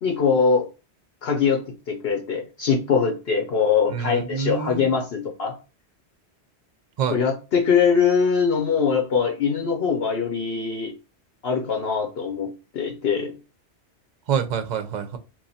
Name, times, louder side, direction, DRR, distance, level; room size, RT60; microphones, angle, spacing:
voice 1, 0.0-0.7 1.2-5.5 7.1-10.9 11.4-13.3, left 6 dB, 65° left, 2 dB, 0.9 m, -22 dB
voice 2, 3.9-4.9 7.0-7.2 14.3-15.2, right 7 dB, 50° right, 8 dB, 0.6 m, -26 dB
3.0 x 2.5 x 4.0 m, 0.30 s
omnidirectional pair, 1.2 m